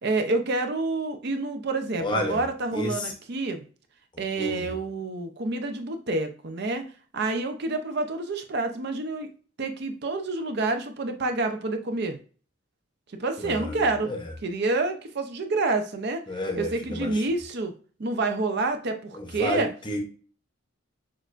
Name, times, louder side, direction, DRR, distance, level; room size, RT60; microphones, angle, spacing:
voice 1, 0.0-3.6 4.2-6.9 7.1-9.3 9.6-12.2 13.2-14.1 14.4-16.2 16.6-17.7 18.0-19.7, right 3 dB, 50° right, 6 dB, 0.5 m, -28 dB
voice 2, 2.0-2.4 2.7-3.1 4.1-4.7 13.4-14.2 16.3-17.2 19.1-20.0, left 1 dB, 20° left, 3 dB, 0.6 m, -31 dB
6.3 x 2.5 x 2.4 m, 0.40 s
head